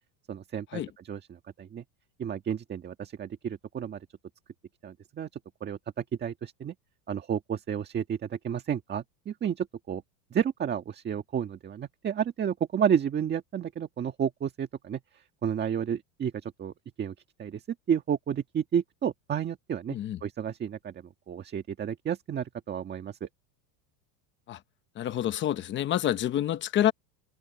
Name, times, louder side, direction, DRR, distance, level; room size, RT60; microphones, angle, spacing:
voice 1, 0.3-1.8 2.2-4.1 4.8-5.3 5.6-6.7 7.1-10.0 10.3-15.0 15.4-17.1 17.4-17.6 17.9-20.0 20.2-23.3, right 8 dB, 20° right, 1.7 m, -31 dB
voice 2, 25.0-26.9, left 11 dB, 25° left, 0.9 m, -27 dB
supercardioid pair, 155°, 47 cm